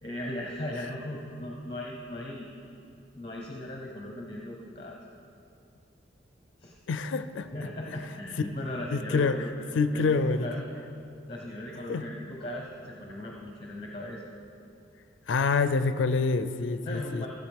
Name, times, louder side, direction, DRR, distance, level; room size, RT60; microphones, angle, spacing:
voice 1, 0.0-2.5 3.1-5.0 6.6-6.7 7.5-9.7 9.9-10.6 11.3-14.2 16.9-17.3, left 1 dB, 25° left, -1 dB, 0.8 m, -38 dB
voice 2, 6.9-7.7 8.9-9.5 9.7-10.5 11.9-12.1 15.3-17.3, left 4 dB, 80° left, 11 dB, 0.4 m, -27 dB
15.5 x 7.9 x 3.5 m, 2.7 s
head